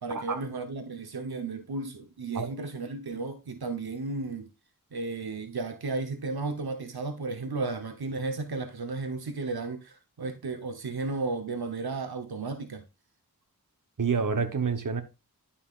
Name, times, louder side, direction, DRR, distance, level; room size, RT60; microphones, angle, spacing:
voice 1, 0.0-4.5 4.9-12.8, right 3 dB, 85° right, 1.0 m, -34 dB
voice 2, 14.0-15.0, right 5 dB, 60° right, 1.1 m, -28 dB
11.0 x 5.8 x 2.4 m
wide cardioid pair, 50°, 36 cm